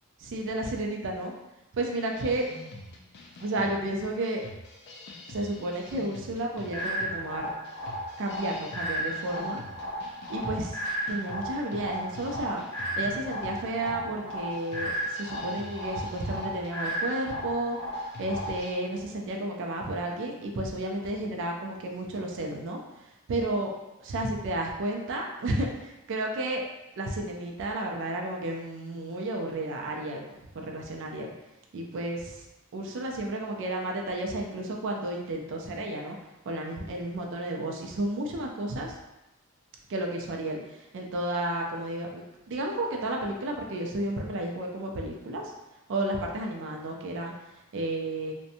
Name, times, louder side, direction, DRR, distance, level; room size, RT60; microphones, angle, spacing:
voice 1, 0.2-1.3 1.7-2.5 3.4-4.4 5.3-7.5 8.2-9.6 10.3-10.8 11.1-12.6 13.0-17.8 18.2-22.8 23.3-23.7 24.0-26.6 27.0-30.2 30.5-31.3 31.7-32.4 32.7-36.2 36.5-39.0 39.9-45.5 45.9-47.3 47.7-48.3, right 1 dB, 60° right, 1 dB, 0.4 m, -32 dB
sound 1, 2.1-18.7, left 1 dB, 50° left, 0.3 m, -47 dB
sound 2, 6.7-18.7, equal, 15° left, 0.8 m, -35 dB
2.5 x 2.1 x 2.7 m, 0.95 s
head